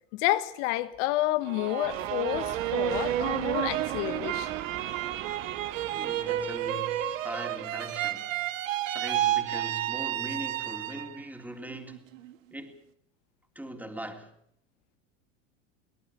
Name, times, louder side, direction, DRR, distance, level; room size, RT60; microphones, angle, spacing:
voice 1, 0.1-4.5, left 16 dB, 65° left, 1.5 m, -30 dB
sound 1, 1.4-11.2 11.7-12.3, right 12 dB, 80° right, 1.4 m, -31 dB
sound 2, 1.8-7.4, right 12 dB, 45° right, 1.7 m, -41 dB
voice 2, 5.9-8.5 8.9-12.1 12.5-12.8 13.5-14.3, right 1 dB, 5° right, 3.4 m, -41 dB
24.0 x 18.0 x 6.9 m
hypercardioid pair, 100°, 39 cm